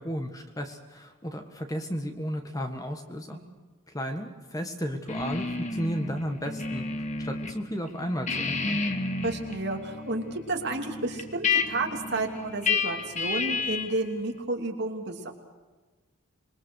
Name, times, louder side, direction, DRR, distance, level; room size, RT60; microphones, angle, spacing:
voice 1, 0.0-3.4 3.9-6.8 7.2-8.8, equal, 15° left, 5 dB, 1.6 m, -33 dB
sound 1, 5.1-7.6 7.9-14.0, left 4 dB, 30° left, 1.6 m, -31 dB
voice 2, 9.2-15.3, right 2 dB, 50° right, 2 dB, 3.1 m, -31 dB
26.5 x 22.0 x 6.4 m, 1.3 s
head